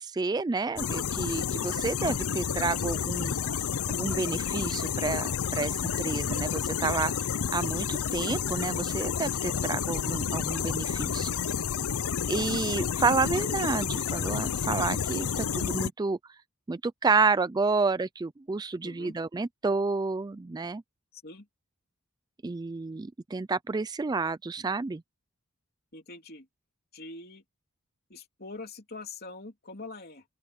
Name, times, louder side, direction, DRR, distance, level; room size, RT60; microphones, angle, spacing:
voice 1, 0.0-3.6 3.9-7.1 7.5-11.3 12.3-16.2 16.7-20.8 22.4-25.0, right 4 dB, 20° right, 0.3 m, -30 dB
sound 1, 0.8-15.9, left 7 dB, 80° left, 0.7 m, -30 dB
voice 2, 18.8-19.1 21.1-21.5 25.9-26.5 26.9-27.4 28.1-30.2, left 3 dB, 45° left, 3.3 m, -43 dB
open air
head